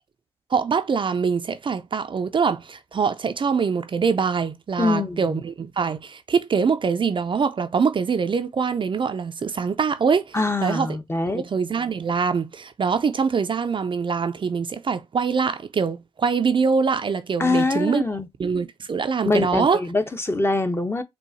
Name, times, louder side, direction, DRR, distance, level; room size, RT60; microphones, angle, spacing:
voice 1, 0.5-10.4 10.6-10.9 11.3-18.0 18.4-19.8, right 5 dB, 45° right, 0.5 m, -23 dB
voice 2, 4.8-5.2 10.3-11.4 17.4-18.3 19.2-21.0, left 2 dB, 20° left, 0.9 m, -23 dB
4.6 x 2.4 x 2.6 m
supercardioid pair, 45°, 12 cm